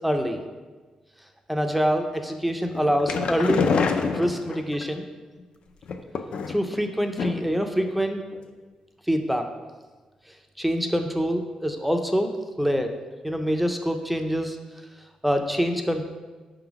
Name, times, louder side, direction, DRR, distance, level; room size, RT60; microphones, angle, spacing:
voice 1, 0.0-0.4 1.5-3.6 4.1-5.0 6.5-8.2 9.1-9.5 10.6-12.3 12.6-12.9 13.2-14.6 15.2-16.0, equal, 5° right, 5 dB, 0.4 m, -25 dB
sound 1, 2.7-4.8 5.8-6.7 7.2-7.6 7.9-8.0 8.3-8.4, left 5 dB, 60° left, 0.4 m, -26 dB
5.3 x 3.9 x 5.8 m, 1.3 s
wide cardioid pair, 155°, 2 cm